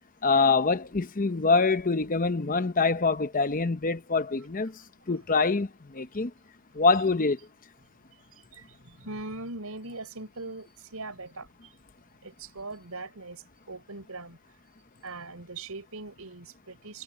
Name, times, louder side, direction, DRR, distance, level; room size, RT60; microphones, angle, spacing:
voice 1, 0.2-4.8 5.1-6.3 6.7-7.4, left 4 dB, 40° left, 0.9 m, -25 dB
voice 2, 8.2-11.7 12.2-14.4 15.0-17.0, right 3 dB, 80° right, 5.4 m, -41 dB
head